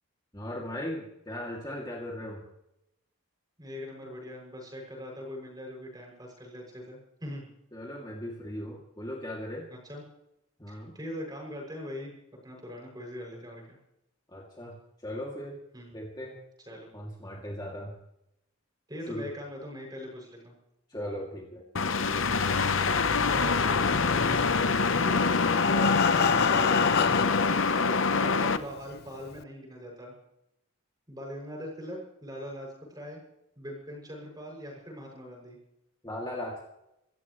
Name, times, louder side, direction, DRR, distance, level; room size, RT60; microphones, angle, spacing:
voice 1, 0.3-2.4 7.7-9.7 10.6-10.9 14.3-14.7 15.0-15.6 15.9-16.4 16.9-17.9 19.1-19.3 20.9-21.6 36.0-36.7, left 1 dB, 20° left, -2 dB, 2.6 m, -38 dB
voice 2, 3.6-7.5 9.7-10.0 10.7-13.8 15.7-15.9 16.7-16.9 18.9-20.6 22.9-24.6 24.9-25.2 25.7-30.1 31.1-33.2 33.5-35.6, equal, 20° right, 0 dB, 6.7 m, -41 dB
sound 1, 21.8-28.6, left 4 dB, 65° left, 1.0 m, -25 dB
Breathing, 24.7-27.6 28.4-28.5 28.8-28.9 29.4-29.5, left 6 dB, 50° left, 0.5 m, -28 dB
26.0 x 15.0 x 3.2 m, 0.83 s
head